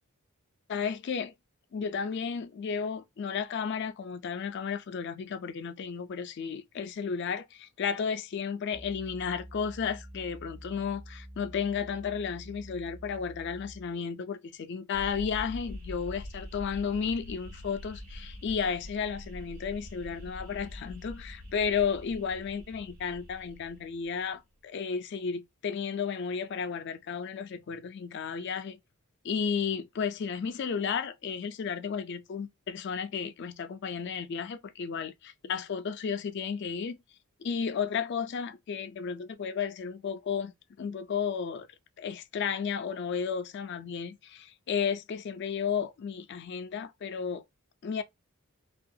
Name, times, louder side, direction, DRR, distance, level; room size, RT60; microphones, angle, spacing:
voice 1, 0.7-1.3 1.7-28.8 29.2-37.0 37.4-40.5 40.8-41.7 42.0-47.4 47.8-48.0, left 6 dB, 50° left, 0.3 m, -33 dB
sound 1, 8.7-14.0, equal, 30° right, 0.4 m, -47 dB
sound 2, 14.9-24.2, left 1 dB, 75° right, 1.1 m, -44 dB
2.7 x 2.3 x 2.6 m
head